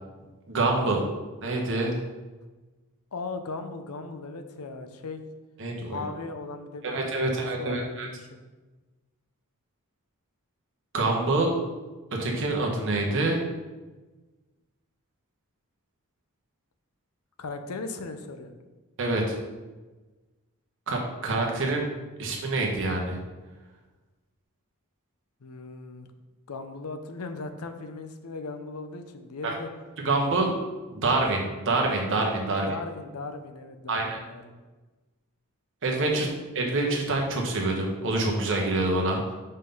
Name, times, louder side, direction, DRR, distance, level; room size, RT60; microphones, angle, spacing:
voice 1, 0.5-1.0 1.4-2.0 5.6-6.0 6.8-8.1 10.9-11.5 12.2-13.4 19.0-19.4 20.9-21.8 22.2-23.2 29.4-29.5 30.0-30.5 30.9-32.7 33.9-34.2 35.8-36.3 36.5-39.3, right 2 dB, 60° right, 0 dB, 1.2 m, -26 dB
voice 2, 3.1-5.2 5.9-8.4 11.3-11.4 17.4-18.5 25.4-26.1 26.5-29.7 32.5-34.5 36.1-36.3, left 3 dB, 80° left, 8 dB, 0.6 m, -38 dB
5.4 x 3.9 x 5.4 m, 1.2 s
head